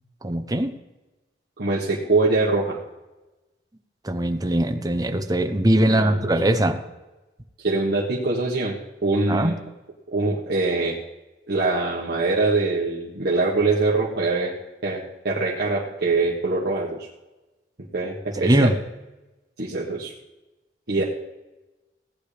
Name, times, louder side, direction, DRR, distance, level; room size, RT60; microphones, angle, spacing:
voice 1, 0.2-0.7 4.0-6.8 9.3-9.5 18.4-18.8, right 1 dB, 20° right, 7 dB, 0.8 m, -21 dB
voice 2, 1.6-2.8 5.9-6.3 7.6-8.8 9.0-9.6 10.1-11.0 11.5-14.5 14.8-17.1 17.9-18.7 19.6-20.1 20.9-21.0, right 3 dB, 65° right, -6 dB, 1.5 m, -23 dB
17.5 x 9.9 x 3.4 m, 1.1 s
head